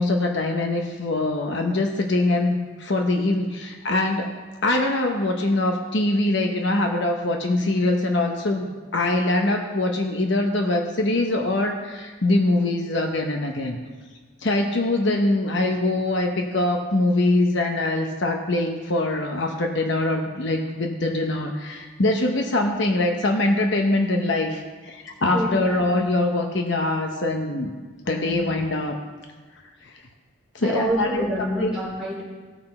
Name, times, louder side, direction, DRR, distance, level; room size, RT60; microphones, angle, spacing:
voice 1, 0.0-4.4 4.6-13.8 14.4-27.8 28.1-28.9 29.8-29.9 30.5-31.7, left 2 dB, 60° left, 3 dB, 1.0 m, -23 dB
voice 2, 25.3-25.8 28.1-28.5 30.6-32.2, right 1 dB, 5° right, -7 dB, 3.4 m, -27 dB
17.0 x 5.9 x 4.4 m, 1.4 s
head